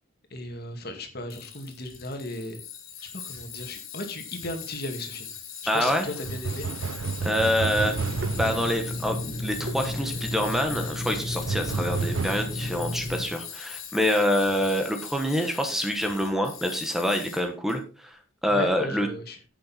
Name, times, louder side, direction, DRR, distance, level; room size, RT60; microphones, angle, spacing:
voice 1, 0.3-2.6 3.1-5.3 5.7-6.7 18.5-19.4, left 1 dB, 50° left, 6 dB, 2.2 m, -36 dB
Tools, 1.3-17.8, left 8 dB, 85° left, 3.2 m, -41 dB
voice 2, 5.7-6.1 7.2-7.9 8.3-19.1, equal, ahead, 5 dB, 1.2 m, -26 dB
sound 1, 6.2-8.8 11.4-12.4, right 5 dB, 75° right, 0.5 m, -30 dB
Water tap faucet / Sink (filling or washing), 7.7-13.3, left 1 dB, 55° right, 2.1 m, -33 dB
10.0 x 8.7 x 4.3 m, 0.35 s
head